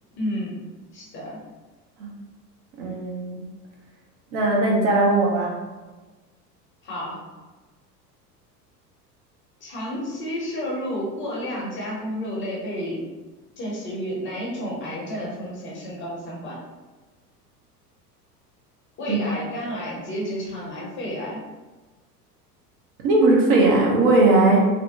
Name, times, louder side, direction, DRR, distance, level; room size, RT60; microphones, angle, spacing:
voice 1, 0.1-0.6 0.9-1.4 6.8-7.2 9.6-13.0 13.6-16.6 19.0-21.4, equal, 25° left, -4 dB, 0.7 m, -31 dB
voice 2, 2.8-3.4 4.3-5.5 19.1-19.2 23.0-24.7, right 2 dB, 50° right, -2 dB, 0.7 m, -18 dB
2.6 x 2.1 x 2.6 m, 1.2 s
figure-of-eight pair, 75°, 48 cm